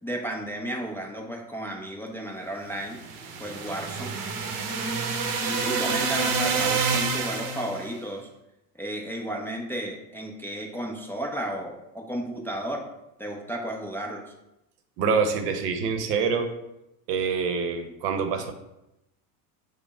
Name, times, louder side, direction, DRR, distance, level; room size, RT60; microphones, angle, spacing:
voice 1, 0.0-3.0 3.4-4.1 5.4-8.3 8.8-12.9 13.2-14.2, right 1 dB, 5° left, -1 dB, 0.4 m, -33 dB
sound 1, 2.9-7.8, right 5 dB, 45° right, 0.8 m, -28 dB
voice 2, 15.0-16.5 17.1-18.5, right 5 dB, 80° right, 7 dB, 0.8 m, -26 dB
5.2 x 2.1 x 4.7 m, 0.91 s
hypercardioid pair, 90°, 47 cm